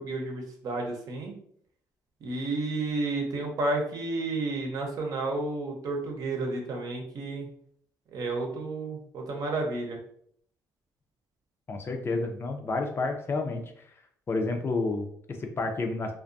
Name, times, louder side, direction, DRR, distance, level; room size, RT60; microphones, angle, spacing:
voice 1, 0.0-1.3 2.2-7.5 8.1-10.0, right 2 dB, 60° right, 1 dB, 0.7 m, -31 dB
voice 2, 11.7-13.6 14.3-16.1, left 3 dB, 35° left, 4 dB, 0.4 m, -30 dB
2.4 x 2.3 x 2.5 m, 0.63 s
cardioid pair, 90°, 7 cm